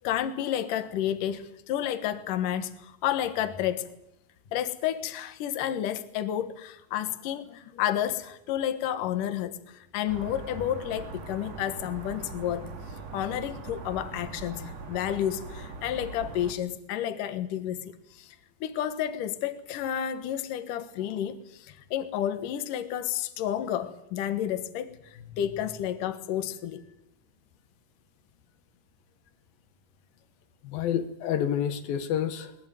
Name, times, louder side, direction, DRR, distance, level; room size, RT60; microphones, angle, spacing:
voice 1, 0.0-3.9 4.5-12.7 13.1-18.4 18.6-26.8, left 11 dB, 70° left, 10 dB, 2.9 m, -31 dB
sound 1, 10.1-16.5, right 3 dB, 50° right, 3.3 m, -41 dB
voice 2, 30.6-32.6, left 9 dB, 85° left, 9 dB, 3.2 m, -29 dB
21.0 x 20.5 x 9.1 m, 0.83 s
omnidirectional pair, 4.0 m